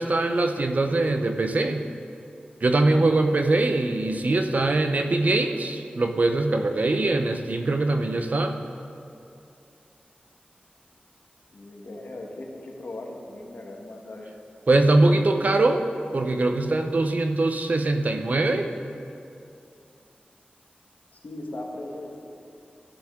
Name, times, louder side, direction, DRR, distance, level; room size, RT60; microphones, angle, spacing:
voice 1, 0.0-1.9 2.6-8.6 14.7-15.8 16.1-18.7, right 2 dB, 55° right, 5 dB, 0.7 m, -22 dB
voice 2, 11.5-14.3 21.1-22.2, left 1 dB, 70° left, 0 dB, 1.3 m, -38 dB
14.5 x 7.1 x 3.7 m, 2.5 s
wide cardioid pair, 95°, 3 cm